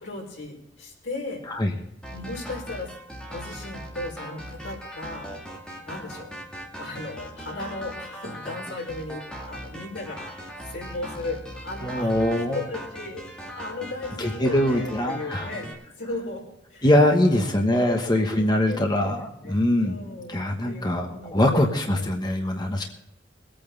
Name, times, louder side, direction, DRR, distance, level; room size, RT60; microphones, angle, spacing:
voice 1, 0.0-1.4 2.1-5.3 5.5-6.3 6.8-16.4 16.7-16.9 17.2-21.6 21.9-22.1 22.8-22.9, left 2 dB, 85° left, -1 dB, 4.9 m, -37 dB
sound 1, 2.0-15.7, equal, 5° left, 2.3 m, -39 dB
voice 2, 11.8-12.6 14.2-15.5 16.8-20.0 20.3-22.8, left 1 dB, 25° left, 3 dB, 1.2 m, -22 dB
22.0 x 8.8 x 3.9 m, 0.76 s
head